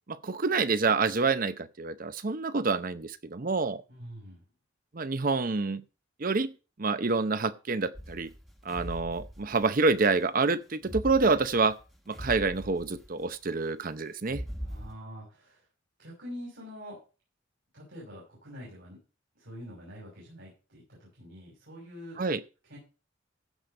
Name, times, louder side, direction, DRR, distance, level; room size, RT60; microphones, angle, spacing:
voice 1, 0.1-3.8 4.9-5.8 6.2-6.5 6.8-8.3 8.6-11.8 12.1-14.4 22.2-22.4, right 4 dB, 45° right, 0.7 m, -27 dB
voice 2, 3.9-4.5 14.6-15.7 16.0-17.0 17.7-19.0 19.3-22.2 22.6-22.8, equal, 70° right, 6.0 m, -45 dB
sound 1, 7.9-9.9 10.8-13.2 14.2-14.9, equal, ahead, 1.2 m, -41 dB
15.5 x 5.2 x 5.4 m
head